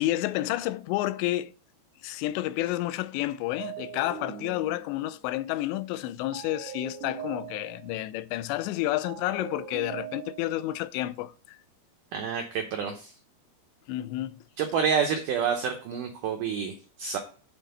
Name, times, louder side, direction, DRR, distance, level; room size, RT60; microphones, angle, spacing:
voice 1, 0.0-1.5 2.0-11.6 13.9-14.4, left 15 dB, 85° left, 2.8 m, -30 dB
sound 1, 3.6-5.3 6.3-8.0 9.0-10.7, right 9 dB, 70° right, 2.1 m, -41 dB
voice 2, 12.1-13.1 14.6-17.2, right 6 dB, 85° right, 1.8 m, -28 dB
9.1 x 3.7 x 6.5 m
omnidirectional pair, 5.0 m